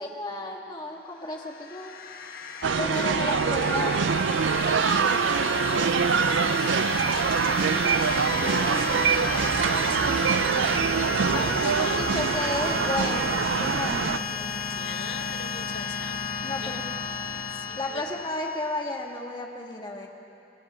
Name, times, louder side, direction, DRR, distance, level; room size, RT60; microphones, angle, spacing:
voice 1, 0.0-1.9 2.8-4.1 8.3-10.6 11.3-14.6 16.4-16.8 17.8-20.1, left 1 dB, 25° left, 0 dB, 1.9 m, -33 dB
sound 1, 1.2-18.9, left 5 dB, 50° left, 1.4 m, -33 dB
sound 2, 2.6-14.2, right 6 dB, 80° right, 0.5 m, -24 dB
voice 2, 2.7-3.9 4.4-7.1 7.4-8.0 11.3-12.0 12.3-12.6 14.7-16.8 17.5-18.0, left 5 dB, 70° left, 7 dB, 1.1 m, -42 dB
sound 3, 8.3-13.9, right 1 dB, 10° right, 0.8 m, -48 dB
25.5 x 18.0 x 6.3 m, 2.6 s
head